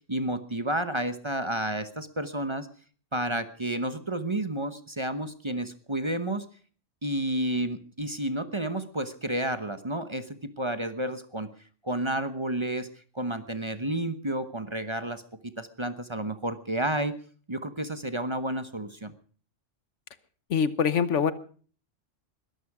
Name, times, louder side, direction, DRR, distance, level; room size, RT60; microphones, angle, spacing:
voice 1, 0.1-2.7 3.1-6.5 7.0-11.5 11.8-17.1 17.5-19.1, right 1 dB, 25° right, 10 dB, 1.0 m, -31 dB
voice 2, 20.5-21.3, left 6 dB, 75° left, 14 dB, 1.3 m, -24 dB
21.5 x 13.5 x 4.8 m, 0.43 s
omnidirectional pair, 1.2 m